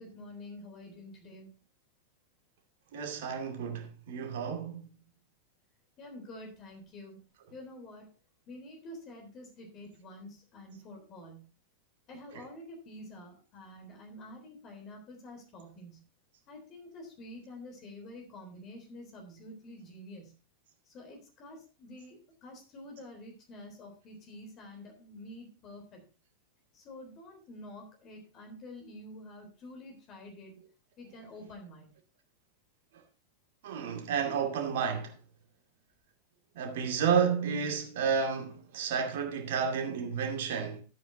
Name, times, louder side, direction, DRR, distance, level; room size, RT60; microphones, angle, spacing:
voice 1, 0.0-1.5 6.0-7.2 7.5-8.1 8.5-11.5 12.1-16.0 16.5-20.4 20.9-26.0 26.7-30.5 31.0-31.9, left 1 dB, 35° left, 3.7 m, -48 dB
voice 2, 2.9-4.9 33.6-35.2 36.5-40.8, right 6 dB, 55° right, 2.4 m, -31 dB
13.5 x 8.9 x 2.8 m
figure-of-eight pair, 90°, 0 cm